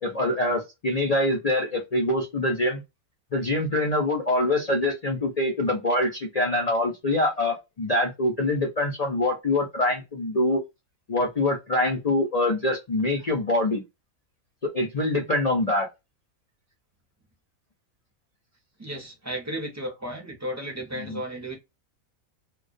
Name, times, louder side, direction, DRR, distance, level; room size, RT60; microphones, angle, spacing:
voice 1, 0.0-2.8 3.3-10.6 11.1-13.8 14.7-15.9 21.0-21.2, left 1 dB, 60° left, 0.4 m, -24 dB
voice 2, 18.8-21.5, right 1 dB, 20° right, 0.4 m, -34 dB
2.3 x 2.2 x 2.4 m
omnidirectional pair, 1.5 m